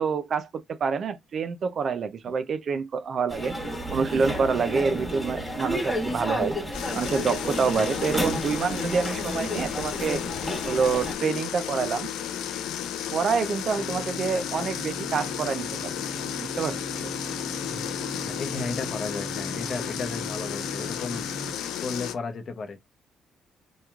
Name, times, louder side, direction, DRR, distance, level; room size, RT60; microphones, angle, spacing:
voice 1, 0.0-3.5 3.9-6.6 6.9-10.2 10.7-12.1 13.1-15.9 16.4-16.8, right 5 dB, 55° right, 0.4 m, -27 dB
sound 1, 3.3-11.1, equal, 5° left, 1.4 m, -31 dB
sound 2, 6.7-22.1, left 10 dB, 90° left, 0.3 m, -33 dB
sound 3, 13.8-21.6 22.0-22.1, right 2 dB, 35° right, 0.8 m, -39 dB
voice 2, 18.2-21.3 21.8-22.8, left 4 dB, 50° left, 0.7 m, -34 dB
2.9 x 2.2 x 2.3 m
cardioid pair, 90°, 0 cm